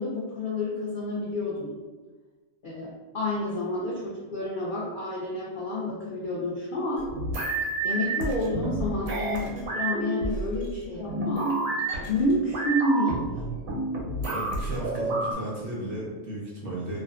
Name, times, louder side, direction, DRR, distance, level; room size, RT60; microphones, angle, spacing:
voice 1, 0.0-1.8 2.6-7.1 7.8-11.7 12.1-13.2, left 1 dB, 75° left, -5 dB, 0.4 m, -29 dB
sound 1, 7.0-15.3, right 2 dB, 85° right, 1.0 m, -30 dB
voice 2, 14.2-17.0, right 1 dB, 60° right, -6 dB, 0.6 m, -34 dB
2.4 x 2.3 x 2.3 m, 1.3 s
omnidirectional pair, 1.4 m